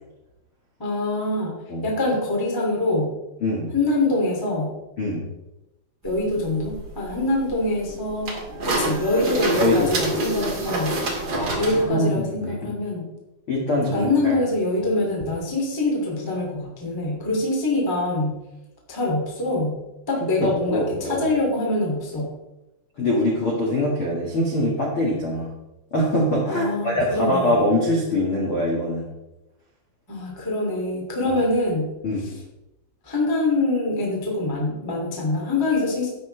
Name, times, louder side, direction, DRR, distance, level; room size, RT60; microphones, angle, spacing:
voice 1, 0.8-1.5 1.8-3.1 3.7-4.7 6.0-8.3 8.6-11.0 11.5-13.0 13.9-18.4 18.9-19.8 20.1-22.3 26.4-27.6 30.1-31.9 32.2-32.3 33.0-36.1, left 2 dB, 15° left, -1 dB, 0.8 m, -24 dB
voice 2, 3.4-3.7 5.0-5.3 9.5-9.9 11.3-12.7 13.5-14.3 20.4-21.2 23.0-25.5 25.9-29.1 31.2-31.4 32.0-32.3, left 1 dB, 65° left, -4 dB, 1.3 m, -23 dB
sound 1, 6.0-11.8, right 2 dB, 45° right, 1.6 m, -28 dB
12.5 x 9.6 x 3.4 m, 0.96 s
omnidirectional pair, 5.7 m